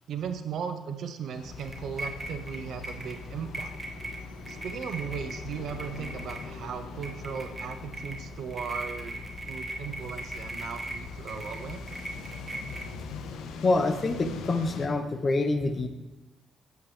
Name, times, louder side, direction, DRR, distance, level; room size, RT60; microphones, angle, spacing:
voice 1, 0.1-3.7 4.5-11.8, right 7 dB, 70° right, 8 dB, 0.7 m, -37 dB
sound 1, 1.3-14.9, left 5 dB, 85° left, 0.7 m, -43 dB
sound 2, 1.4-13.3, equal, 20° right, 1.4 m, -40 dB
voice 2, 13.6-15.9, left 2 dB, 35° left, 9 dB, 0.8 m, -26 dB
8.8 x 7.8 x 3.3 m, 1.0 s
cardioid pair, 80°, 0 cm